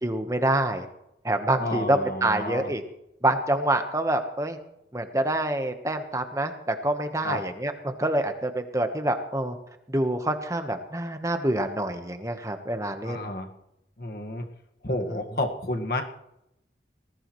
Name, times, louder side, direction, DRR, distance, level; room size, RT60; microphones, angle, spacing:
voice 1, 0.0-0.9 1.2-2.8 3.2-4.6 4.9-9.6 9.9-13.3 14.9-15.2, right 1 dB, 20° right, 7 dB, 1.2 m, -26 dB
voice 2, 1.6-2.7 7.2-7.4 13.0-13.5 14.0-14.4 14.8-16.0, left 2 dB, 55° left, 4 dB, 1.7 m, -30 dB
20.0 x 16.0 x 3.2 m, 0.84 s
head